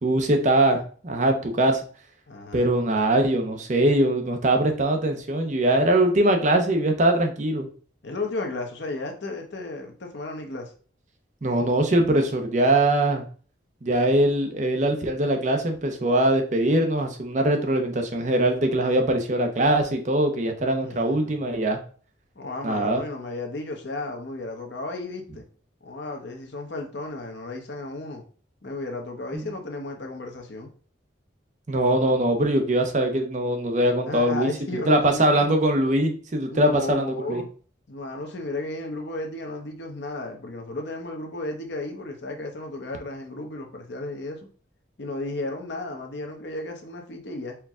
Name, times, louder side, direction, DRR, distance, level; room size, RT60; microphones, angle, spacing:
voice 1, 0.0-1.8 2.5-7.7 11.4-13.2 13.8-21.8 22.6-23.0 29.3-29.4 31.7-34.5 34.9-37.4, right 1 dB, 40° right, 4 dB, 0.6 m, -22 dB
voice 2, 2.3-2.7 8.0-10.7 20.7-21.4 22.4-25.4 25.8-28.2 28.6-30.7 34.0-35.5 36.5-37.5 37.9-44.5 45.0-47.6, left 2 dB, 65° left, 3 dB, 0.8 m, -34 dB
4.5 x 2.2 x 3.6 m, 0.41 s
head